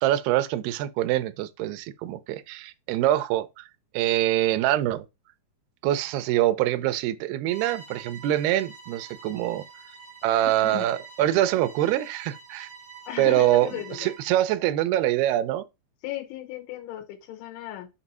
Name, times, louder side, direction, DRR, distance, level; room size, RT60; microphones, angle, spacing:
voice 1, 0.0-3.6 3.9-5.1 5.8-9.6 10.2-12.7 13.2-13.7 14.0-15.6, right 14 dB, 80° right, 2.3 m, -24 dB
Bowed string instrument, 7.4-14.4, right 6 dB, 50° right, 0.6 m, -46 dB
voice 2, 10.4-10.9 13.1-14.1 16.0-17.9, left 14 dB, 90° left, 3.4 m, -36 dB
7.2 x 2.8 x 5.4 m
omnidirectional pair, 5.2 m